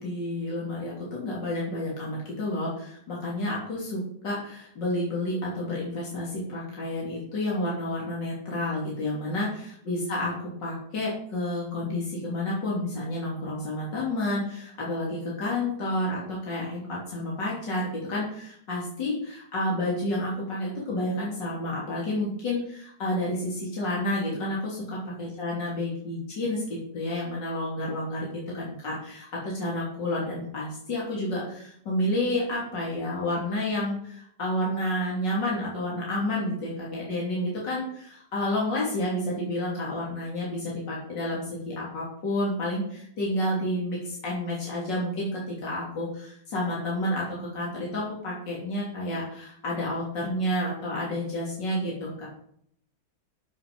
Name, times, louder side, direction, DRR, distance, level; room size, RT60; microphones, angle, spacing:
voice 1, 0.0-10.3 10.6-52.3, left 1 dB, 85° left, -5 dB, 3.7 m, -30 dB
14.5 x 6.2 x 5.4 m, 0.67 s
omnidirectional pair, 1.9 m